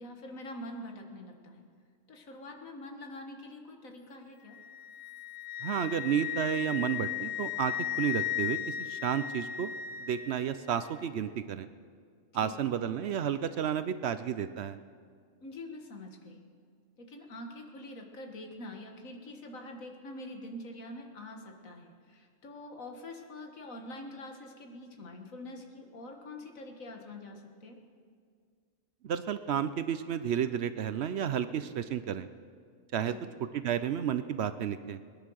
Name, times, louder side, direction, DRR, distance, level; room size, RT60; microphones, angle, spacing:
voice 1, 0.0-1.7 2.1-4.6 12.4-12.6 15.4-16.4 17.0-27.8 33.0-33.2, left 1 dB, 85° left, 3 dB, 2.0 m, -45 dB
Wind instrument woodwind instrument, 4.5-10.5, left 11 dB, 65° left, 0.7 m, -36 dB
voice 2, 5.6-9.7 10.0-11.7 12.3-14.8 29.0-32.3 32.9-33.1 33.5-35.0, right 9 dB, 65° right, 12 dB, 0.8 m, -32 dB
21.5 x 10.0 x 6.3 m, 2.1 s
omnidirectional pair, 1.4 m